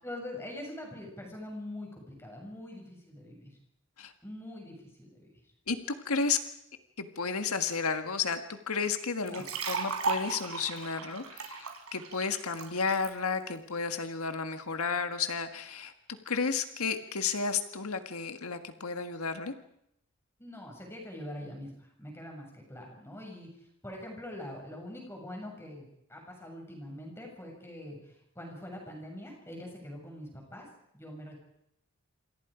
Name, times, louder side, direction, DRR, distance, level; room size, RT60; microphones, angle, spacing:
voice 1, 0.0-3.6 4.2-5.3 9.3-9.4 20.4-23.5 23.8-30.7 30.9-31.4, left 1 dB, 10° left, 0 dB, 6.9 m, -43 dB
voice 2, 5.7-6.4 7.0-15.9 16.2-19.5, left 5 dB, 85° left, 8 dB, 1.7 m, -32 dB
sound 1, 9.3-13.1, right 4 dB, 85° right, 4.4 m, -36 dB
27.5 x 27.0 x 5.1 m, 0.76 s
head